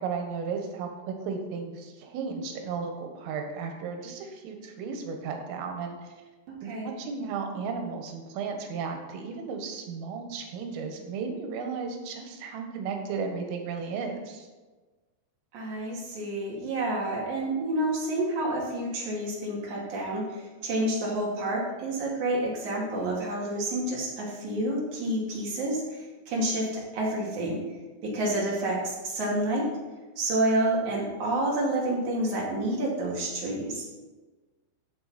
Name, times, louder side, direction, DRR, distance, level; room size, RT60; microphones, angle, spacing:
voice 1, 0.0-6.2 6.6-14.5, right 5 dB, 85° right, 4 dB, 4.0 m, -34 dB
voice 2, 6.5-7.0 15.5-27.6 28.0-29.7 30.2-33.8, right 1 dB, 45° right, -4 dB, 3.2 m, -29 dB
14.5 x 6.7 x 4.3 m, 1.3 s
omnidirectional pair, 5.7 m